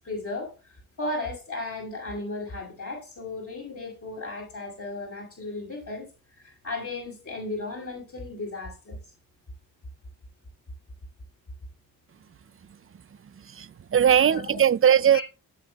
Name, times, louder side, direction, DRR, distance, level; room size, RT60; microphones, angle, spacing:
voice 1, 0.0-6.1 6.4-9.0 14.2-14.6 15.1-15.2, left 2 dB, 50° left, 6.3 m, -35 dB
voice 2, 13.5-15.2, right 9 dB, 35° right, 0.5 m, -20 dB
17.0 x 7.4 x 2.4 m
cardioid pair, 70°, 38 cm